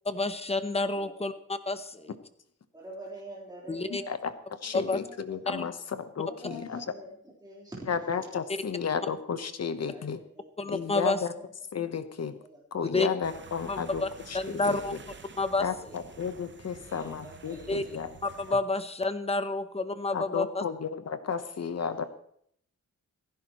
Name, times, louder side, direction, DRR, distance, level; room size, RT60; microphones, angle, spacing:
voice 1, 0.1-1.3 1.7-2.1 3.7-4.0 4.7-5.0 5.5-5.6 10.6-11.2 12.9-13.1 13.7-14.1 14.3-14.9 15.4-15.6 17.7-17.8 18.4-20.6, left 2 dB, 20° left, 11 dB, 0.8 m, -29 dB
voice 2, 0.9-1.3 1.9-2.1 2.7-4.1 4.7-5.2 6.2-7.1 7.4-8.2 9.9-10.9 11.3-11.5 12.4-12.6 13.3-13.4 14.6-14.9 15.7-16.0 16.8-18.3 20.3-20.4 21.6-22.0, right 1 dB, 15° right, -6 dB, 3.8 m, -47 dB
voice 3, 3.9-6.8 7.9-10.2 10.7-11.3 11.7-12.4 12.7-15.0 15.6-18.1 18.5-18.6 20.1-22.0, left 6 dB, 55° left, 10 dB, 1.0 m, -33 dB
sound 1, 13.2-18.6, right 5 dB, 35° right, 0.9 m, -49 dB
28.0 x 10.5 x 3.1 m, 0.68 s
wide cardioid pair, 170°, 31 cm